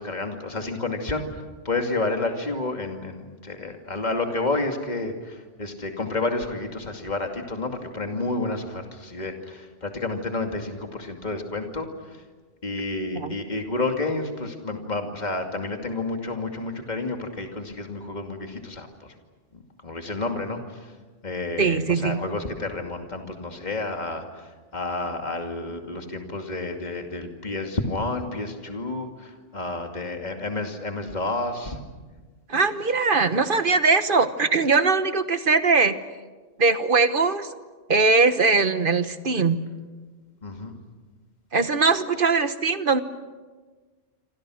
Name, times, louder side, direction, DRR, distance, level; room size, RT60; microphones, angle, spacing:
voice 1, 0.0-12.2 12.6-19.1 19.8-20.9 21.2-31.8 40.4-40.8, left 2 dB, 35° left, 4 dB, 2.6 m, -30 dB
voice 2, 21.6-22.2 32.5-36.0 36.6-37.5 37.9-39.6 41.5-43.0, right 4 dB, 50° right, 11 dB, 1.3 m, -21 dB
27.5 x 26.5 x 6.4 m, 1.3 s
omnidirectional pair, 1.2 m